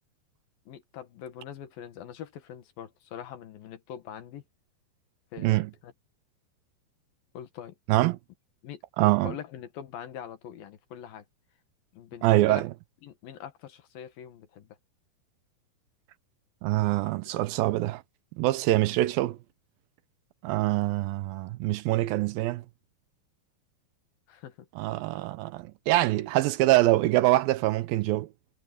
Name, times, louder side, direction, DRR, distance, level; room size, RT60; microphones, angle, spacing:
voice 1, 0.7-4.4 5.3-5.9 7.3-7.8 8.6-8.8 9.1-11.2 11.9-12.6 13.0-14.8 17.0-17.1 24.3-24.7, left 9 dB, 70° left, 3.2 m, -43 dB
voice 2, 5.4-5.7 7.9-8.2 9.0-9.3 12.2-12.7 16.6-18.0 18.4-19.4 20.4-22.6 24.8-28.3, right 17 dB, 80° right, 2.4 m, -24 dB
omnidirectional pair, 4.4 m